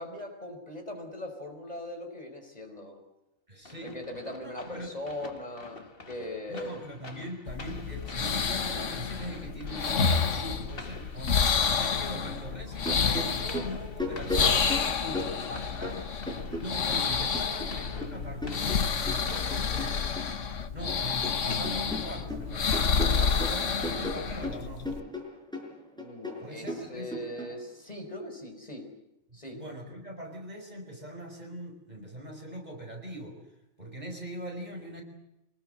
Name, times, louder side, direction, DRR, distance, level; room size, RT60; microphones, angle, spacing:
voice 1, 0.0-3.0 3.8-6.8 14.9-15.3 26.0-28.9 29.3-29.6, left 1 dB, 30° left, 3 dB, 5.0 m, -40 dB
voice 2, 3.5-4.0 4.4-4.9 6.5-14.6 15.5-16.0 16.6-20.1 20.7-25.0 26.4-27.2 29.3-33.4 33.8-35.0, equal, 30° right, 2 dB, 5.2 m, -41 dB
sound 1, 3.6-20.4, left 3 dB, 45° left, 2.0 m, -48 dB
sound 2, 7.5-25.0, left 6 dB, 70° left, 1.6 m, -29 dB
sound 3, 12.7-17.0 17.3-20.3 20.6-21.4 21.6-27.5, left 1 dB, 5° left, 5.8 m, -36 dB
25.5 x 20.5 x 7.8 m, 0.89 s
omnidirectional pair, 1.3 m